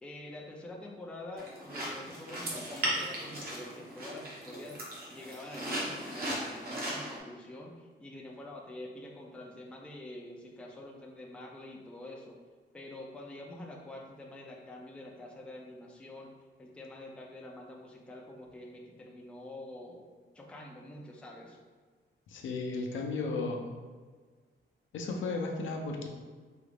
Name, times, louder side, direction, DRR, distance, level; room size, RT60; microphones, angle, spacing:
voice 1, 0.0-4.8 5.1-12.4 12.7-16.3 16.6-20.1 20.3-21.6, left 1 dB, 5° left, -1 dB, 0.4 m, -46 dB
sound 1, 1.4-7.2, right 1 dB, 50° right, 1.0 m, -37 dB
voice 2, 22.3-23.7 24.9-26.1, left 3 dB, 75° left, 2 dB, 0.6 m, -34 dB
4.8 x 2.4 x 3.3 m, 1.5 s
wide cardioid pair, 165°, 20 cm